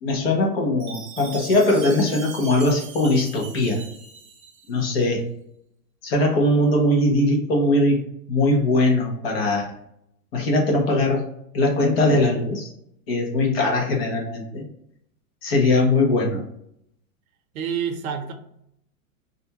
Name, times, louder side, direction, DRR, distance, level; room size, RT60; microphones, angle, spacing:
voice 1, 0.0-3.8 4.7-5.2 6.0-8.0 8.3-9.7 10.3-11.2 11.5-12.7 13.1-14.6 15.4-16.4, left 2 dB, 40° left, 0 dB, 0.8 m, -20 dB
Chime, 0.8-4.9, right 5 dB, 35° right, 0.6 m, -40 dB
voice 2, 17.5-18.3, right 7 dB, 75° right, 5 dB, 0.7 m, -27 dB
2.5 x 2.3 x 2.7 m, 0.75 s
supercardioid pair, 170°, 43 cm